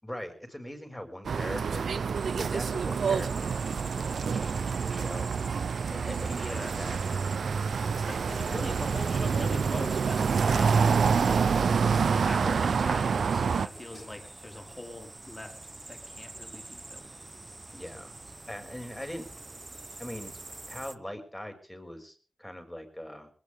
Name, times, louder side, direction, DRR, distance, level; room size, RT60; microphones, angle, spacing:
voice 1, 0.0-5.3 5.9-7.0 12.3-12.7 17.7-18.2 18.5-19.2 20.0-20.3 20.7-23.3, left 1 dB, 10° left, 6 dB, 6.4 m, -41 dB
sound 1, 1.2-13.7, right 5 dB, 80° right, 0.7 m, -27 dB
sound 2, 2.1-21.0, right 2 dB, 35° right, 1.1 m, -46 dB
voice 2, 6.4-6.8 7.9-15.6 15.9-17.1, left 1 dB, 30° left, 4 dB, 4.9 m, -42 dB
sound 3, 7.7-8.6 9.0-9.8 10.2-10.8 11.2-12.0 12.3-13.2 13.6-14.6, left 2 dB, 45° left, 6.3 m, -54 dB
20.0 x 19.5 x 3.7 m, 0.42 s
cardioid pair, 45°, 0 cm